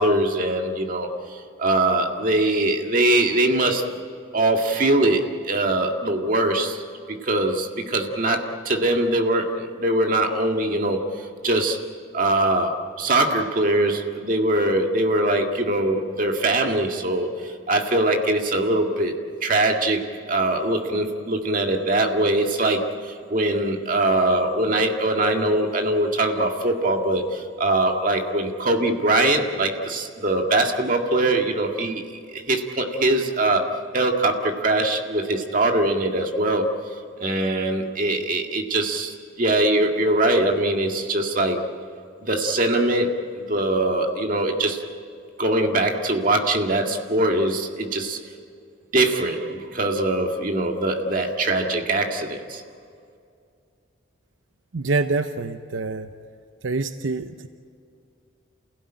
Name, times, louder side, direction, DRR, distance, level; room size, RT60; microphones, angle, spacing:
voice 1, 0.0-3.9 4.3-6.8 7.1-11.8 12.1-33.7 33.9-36.7 37.2-41.6 42.2-44.8 45.4-48.2 48.9-52.6, right 2 dB, 45° right, 3 dB, 1.9 m, -22 dB
voice 2, 54.7-56.1 56.6-57.5, right 3 dB, 80° right, 9 dB, 0.7 m, -26 dB
28.5 x 17.0 x 8.9 m, 2.4 s
head